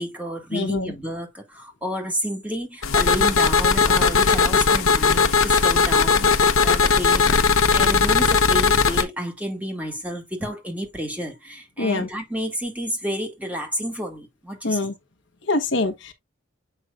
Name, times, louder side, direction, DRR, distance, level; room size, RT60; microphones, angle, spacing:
voice 1, 0.0-14.8, equal, 5° right, 1.8 m, -30 dB
voice 2, 0.5-0.9 11.8-12.1 14.6-14.9 15.5-16.1, left 2 dB, 60° left, 1.1 m, -24 dB
sound 1, 2.8-9.0, left 5 dB, 90° left, 0.9 m, -18 dB
7.7 x 5.5 x 2.4 m
head